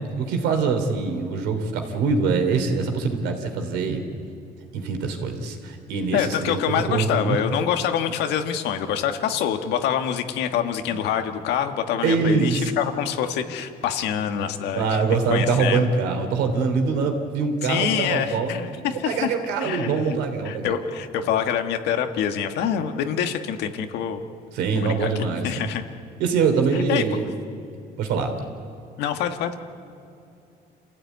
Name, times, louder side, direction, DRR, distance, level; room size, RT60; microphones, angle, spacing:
voice 1, 0.2-4.0 4.7-7.4 10.9-11.0 12.0-12.7 14.7-20.7 24.5-25.7 26.2-27.3 28.0-28.4, right 5 dB, 90° right, 5 dB, 3.2 m, -24 dB
voice 2, 6.1-15.0 15.3-15.9 17.6-20.2 20.4-24.2 24.7-25.1 25.4-25.8 26.7-27.0 29.0-29.5, left 9 dB, 85° left, 6 dB, 1.7 m, -26 dB
27.5 x 15.5 x 9.4 m, 2.7 s
cardioid pair, 110°, 17 cm